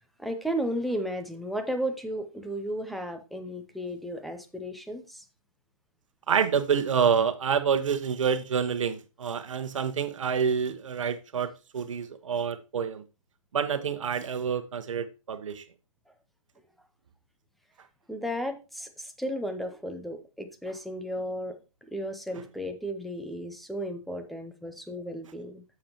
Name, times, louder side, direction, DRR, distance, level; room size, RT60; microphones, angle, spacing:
voice 1, 0.2-5.2 18.1-21.6 21.9-25.6, equal, ahead, 0.5 m, -34 dB
voice 2, 6.3-13.0 13.5-15.6, right 7 dB, 60° right, 1.1 m, -27 dB
8.5 x 7.2 x 2.9 m
hypercardioid pair, 150°, 18 cm